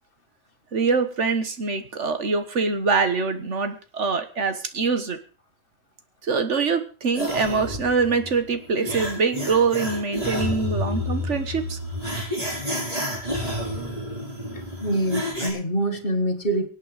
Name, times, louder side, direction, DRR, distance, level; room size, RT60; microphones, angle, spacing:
voice 1, 0.7-5.2 6.2-11.8, right 4 dB, 65° right, 9 dB, 1.7 m, -24 dB
sound 1, 7.1-15.5, equal, 30° right, 5.6 m, -30 dB
voice 2, 14.5-16.7, right 1 dB, 45° left, 7 dB, 1.9 m, -26 dB
24.0 x 8.5 x 5.0 m, 0.37 s
omnidirectional pair, 1.3 m